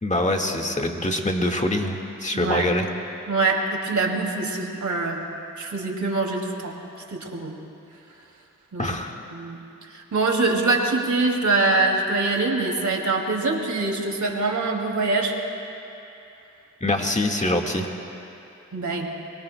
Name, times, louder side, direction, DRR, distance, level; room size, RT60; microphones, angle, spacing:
voice 1, 0.0-2.9 8.8-9.2 16.8-17.9, left 1 dB, 20° left, 2 dB, 1.8 m, -24 dB
voice 2, 2.3-2.7 3.3-5.2 5.6-6.8 7.1-7.6 8.7-8.9 9.3-9.6 9.9-15.4 18.7-19.1, right 3 dB, 60° right, 1 dB, 2.6 m, -24 dB
25.0 x 22.5 x 2.3 m, 2.8 s
cardioid pair, 50°, 33 cm